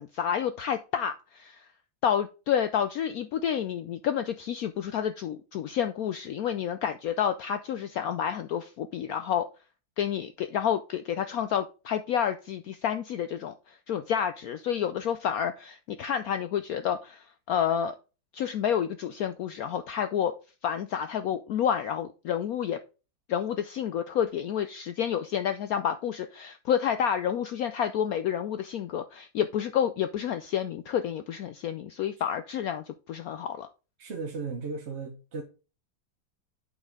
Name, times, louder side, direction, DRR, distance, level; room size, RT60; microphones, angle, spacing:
voice 1, 0.0-1.7 2.0-9.5 10.0-17.9 18.3-20.4 20.6-22.8 23.3-33.7, left 9 dB, 75° left, 0.8 m, -29 dB
voice 2, 34.0-35.4, right 4 dB, 45° right, 1.1 m, -35 dB
8.2 x 5.3 x 3.6 m
omnidirectional pair, 2.1 m